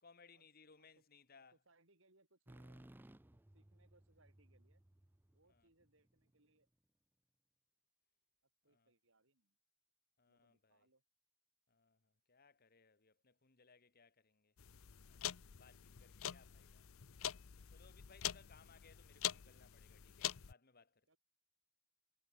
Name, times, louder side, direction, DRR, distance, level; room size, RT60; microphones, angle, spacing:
voice 1, 0.0-1.6 5.5-5.7 8.6-8.9 10.2-10.9 11.7-14.5 15.1-15.2 15.5-16.9 17.7-21.1, left 5 dB, 45° left, 1.7 m, -66 dB
voice 2, 1.3-2.9 3.5-4.8 5.3-6.7 8.6-9.6 10.3-11.0 21.1-21.2, right 2 dB, 65° right, 5.6 m, -74 dB
sound 1, 2.5-6.2, right 1 dB, 10° right, 0.5 m, -61 dB
sound 2, 14.6-20.5, left 11 dB, 75° left, 0.7 m, -45 dB
head